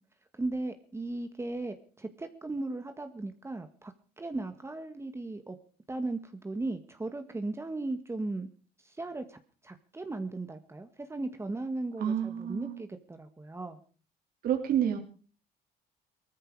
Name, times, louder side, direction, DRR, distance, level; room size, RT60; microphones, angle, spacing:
voice 1, 0.4-5.6 5.9-8.5 8.8-13.8, right 2 dB, 15° right, 8 dB, 1.7 m, -37 dB
voice 2, 12.0-12.8 14.4-15.0, right 9 dB, 60° right, 4 dB, 3.1 m, -29 dB
19.5 x 14.0 x 4.8 m, 0.39 s
cardioid pair, 110°, 17 cm